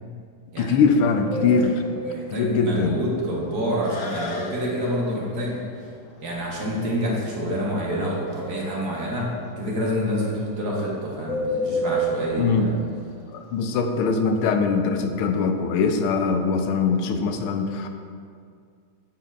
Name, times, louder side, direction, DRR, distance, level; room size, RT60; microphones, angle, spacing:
voice 1, 0.6-1.9 2.3-3.0 12.4-12.7 13.3-17.9, left 4 dB, 85° left, 6 dB, 1.5 m, -22 dB
Bird, 1.3-14.3, equal, 70° left, 1.6 m, -32 dB
voice 2, 2.0-5.6 6.2-12.8, equal, 55° right, -4 dB, 1.7 m, -28 dB
9.9 x 7.3 x 2.5 m, 2.2 s
omnidirectional pair, 2.3 m